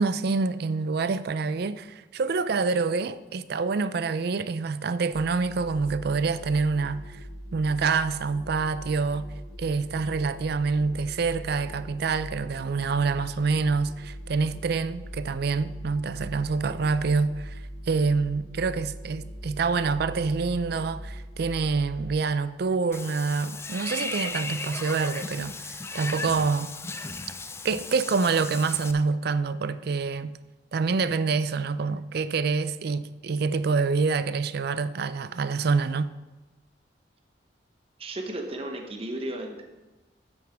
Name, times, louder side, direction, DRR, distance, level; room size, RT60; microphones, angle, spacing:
voice 1, 0.0-7.2 7.5-9.3 9.6-17.6 17.9-26.7 27.6-30.4 30.7-36.1, right 4 dB, 60° right, 0.4 m, -26 dB
sound 1, 5.1-22.2, equal, 40° left, 1.8 m, -41 dB
Water / Bathtub (filling or washing), 22.9-28.9, left 3 dB, 15° left, 0.4 m, -36 dB
voice 2, 38.0-39.6, right 1 dB, 35° right, 0.9 m, -34 dB
9.3 x 8.8 x 3.5 m
head